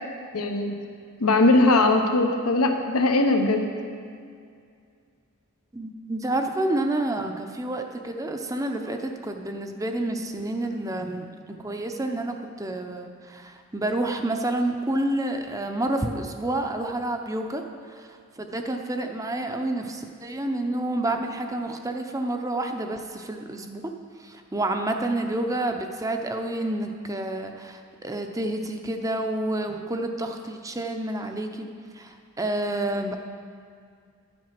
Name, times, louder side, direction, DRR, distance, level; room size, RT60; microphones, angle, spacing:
voice 1, 0.3-0.7 1.2-3.7, left 2 dB, 80° left, 4 dB, 1.0 m, -20 dB
voice 2, 5.7-23.8 24.2-31.7 31.9-33.2, right 1 dB, 15° right, 4 dB, 0.6 m, -29 dB
11.0 x 7.6 x 5.9 m, 2.2 s
head